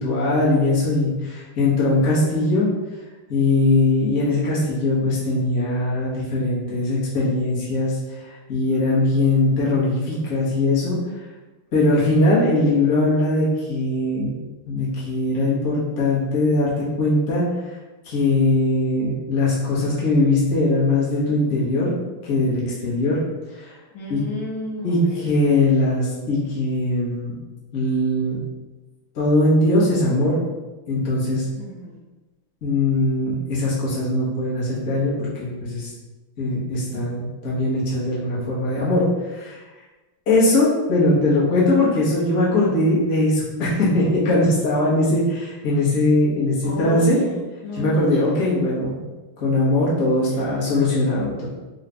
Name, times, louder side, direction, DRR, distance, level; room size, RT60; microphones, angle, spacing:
voice 1, 0.0-2.7 3.3-11.0 11.7-14.3 14.7-17.4 18.0-21.9 22.2-23.2 23.5-23.7 24.1-24.2 24.8-27.3 27.7-28.4 29.1-30.4 30.9-31.4 32.6-35.1 35.4-35.9 36.4-39.6 40.3-47.2 47.7-49.1 49.4-51.5, left 2 dB, 45° left, -7 dB, 1.2 m, -20 dB
voice 2, 23.9-25.3 31.6-32.0 46.6-48.1, left 1 dB, 75° left, -3 dB, 1.4 m, -31 dB
3.8 x 2.4 x 3.3 m, 1.2 s
omnidirectional pair, 2.4 m